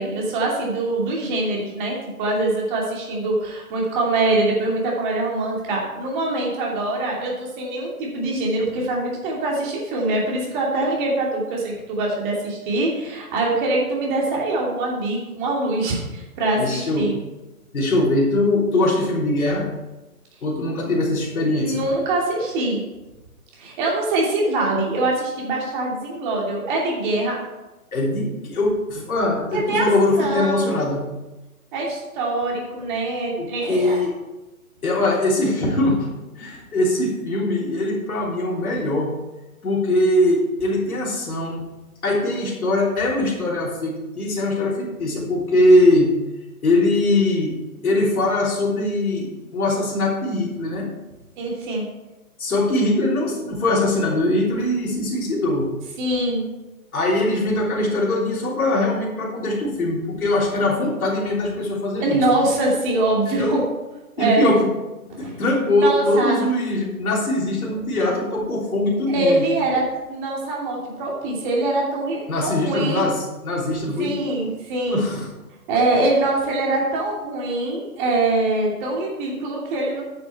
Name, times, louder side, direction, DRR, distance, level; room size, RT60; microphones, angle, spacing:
voice 1, 0.0-17.2 21.6-22.8 23.6-27.4 29.5-29.9 30.2-31.0 31.7-34.0 51.4-51.9 56.0-56.4 62.0-63.6 64.2-64.5 65.1-65.3 65.8-66.4 69.1-73.1 74.0-75.0 75.7-80.0, right 2 dB, 30° right, -2 dB, 2.8 m, -23 dB
voice 2, 16.6-17.1 17.7-19.7 20.4-21.7 27.9-31.0 33.4-34.1 34.8-36.1 36.4-39.1 39.6-41.7 42.0-46.1 46.6-47.5 47.8-50.9 52.4-55.7 56.9-62.2 63.3-63.6 64.2-64.7 65.2-69.4 72.3-74.1 74.9-75.3, left 1 dB, 70° left, -3 dB, 3.3 m, -21 dB
9.2 x 6.9 x 4.5 m, 1.1 s
figure-of-eight pair, 135°, 45 cm